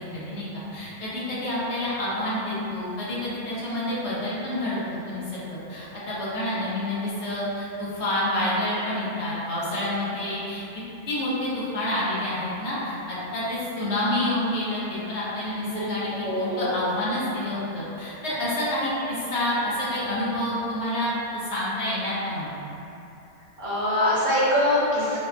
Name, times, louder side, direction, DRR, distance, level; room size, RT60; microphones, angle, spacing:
voice 1, 0.0-10.6 11.1-22.6, left 1 dB, 70° left, -9 dB, 1.2 m, -28 dB
voice 2, 16.2-16.7 23.6-25.2, left 1 dB, 70° right, -9 dB, 1.3 m, -23 dB
4.8 x 2.2 x 2.7 m, 2.9 s
omnidirectional pair, 1.2 m